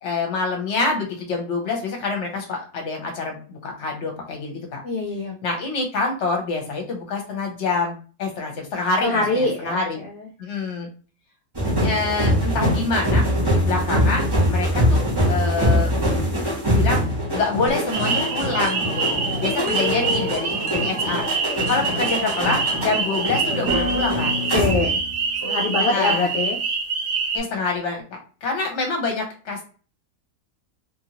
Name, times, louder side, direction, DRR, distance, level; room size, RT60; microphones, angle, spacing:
voice 1, 0.0-4.8 5.4-10.0 10.4-10.9 11.8-13.2 13.6-15.0 15.3-15.9 16.7-17.1 17.3-19.1 19.4-21.3 21.7-24.3 25.8-26.3 27.3-28.0 28.4-29.6, left 3 dB, 50° left, 1 dB, 1.0 m, -26 dB
voice 2, 4.8-5.4 9.0-10.3 19.6-20.5 24.5-25.0 25.4-26.6, left 3 dB, 70° left, -1 dB, 0.7 m, -24 dB
sound 1, 11.5-25.1 25.4-25.7, equal, 20° right, 0.8 m, -23 dB
sound 2, 17.7-25.5, right 1 dB, 55° right, 1.0 m, -33 dB
sound 3, 17.9-27.4, right 5 dB, 85° right, 1.2 m, -26 dB
2.9 x 2.6 x 2.8 m, 0.38 s
omnidirectional pair, 1.7 m